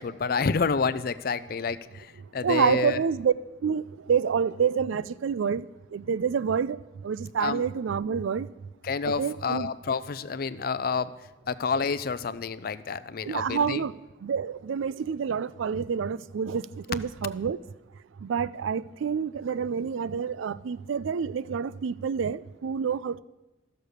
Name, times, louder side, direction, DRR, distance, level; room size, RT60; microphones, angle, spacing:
voice 1, 0.0-3.0 7.4-7.7 8.8-11.1 11.5-13.9, left 5 dB, 50° left, 0.4 m, -29 dB
voice 2, 2.4-3.3 3.6-5.6 5.9-6.8 7.0-8.5 9.0-9.7 13.2-13.9 14.2-17.6 18.2-23.2, right 6 dB, 90° right, 0.4 m, -28 dB
12.5 x 6.6 x 6.5 m
head